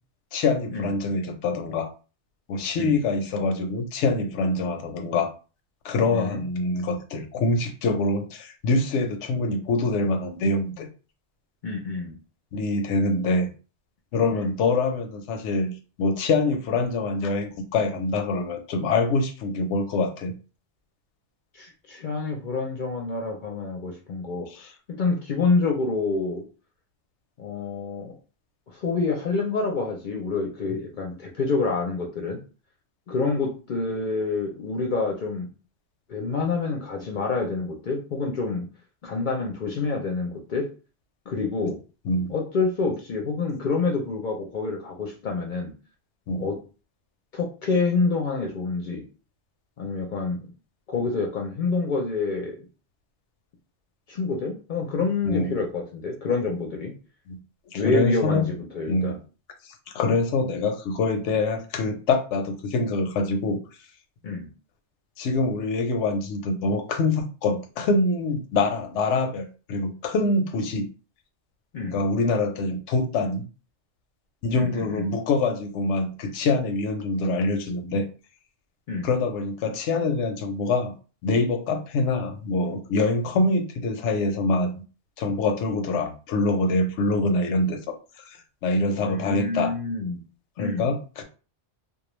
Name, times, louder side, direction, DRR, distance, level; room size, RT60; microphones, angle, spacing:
voice 1, 0.3-1.9 2.5-5.3 5.8-10.9 12.5-13.5 14.1-15.7 16.0-20.3 24.6-24.7 30.7-30.8 42.0-42.3 46.3-46.5 55.2-55.6 57.3-57.4 57.7-58.5 58.9-59.2 59.6-63.6 65.2-70.9 71.9-73.4 74.4-78.1 79.0-80.9 81.2-84.8 85.2-89.7 90.6-91.2, left 3 dB, 85° left, 7 dB, 0.9 m, -25 dB
voice 2, 6.1-6.4 11.6-12.2 14.3-14.5 21.5-24.5 24.9-26.4 27.4-28.1 28.7-32.4 33.1-35.5 36.1-38.7 39.0-40.7 41.3-41.8 42.3-45.7 46.4-46.6 47.3-49.0 49.8-50.5 50.9-52.6 54.1-56.9 57.7-59.2 64.2-64.5 71.7-72.0 74.6-75.1 78.9-79.1 89.0-90.2 90.6-90.9, left 4 dB, 55° left, 1 dB, 0.6 m, -27 dB
2.3 x 2.2 x 3.0 m, 0.35 s
omnidirectional pair, 1.2 m